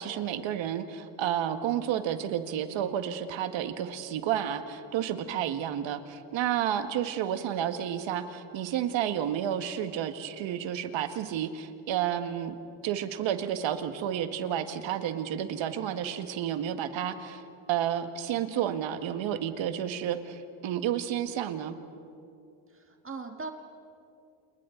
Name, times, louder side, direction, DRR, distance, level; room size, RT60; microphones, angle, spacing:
voice 1, 0.0-12.6 12.8-17.4 17.7-21.8, right 10 dB, 65° right, 8 dB, 1.7 m, -31 dB
voice 2, 22.7-23.5, right 4 dB, 25° right, 4 dB, 1.8 m, -39 dB
29.0 x 28.5 x 3.9 m, 2.6 s
supercardioid pair, 95°, 49 cm